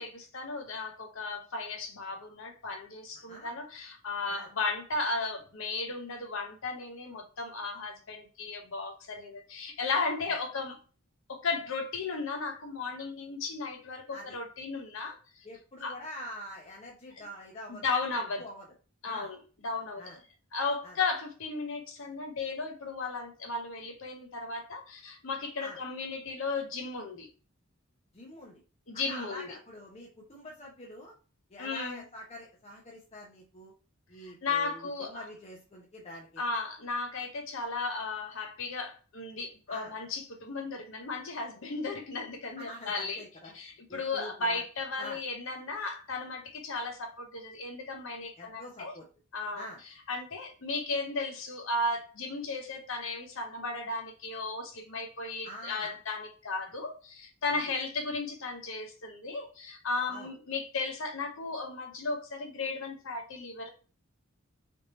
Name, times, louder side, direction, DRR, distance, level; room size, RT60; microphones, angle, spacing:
voice 1, 0.0-10.8 11.3-15.4 15.8-16.0 17.2-17.3 17.7-18.4 19.0-20.2 20.5-27.3 28.9-29.6 31.6-32.0 34.2-35.3 36.4-43.2 43.5-48.9 49.3-49.7 50.1-63.7, left 3 dB, 65° left, 0.8 m, -35 dB
voice 2, 15.4-18.7 19.0-19.3 20.0-20.2 20.8-20.9 25.6-25.8 28.1-28.6 28.9-31.1 31.5-33.7 34.1-34.8 35.1-36.4 39.7-39.9 42.6-43.6 43.9-44.6 45.0-45.2 48.4-49.0 49.5-49.8 55.4-56.0 57.5-57.6 60.1-60.3, equal, 30° left, 0.7 m, -45 dB
3.5 x 2.7 x 3.0 m
head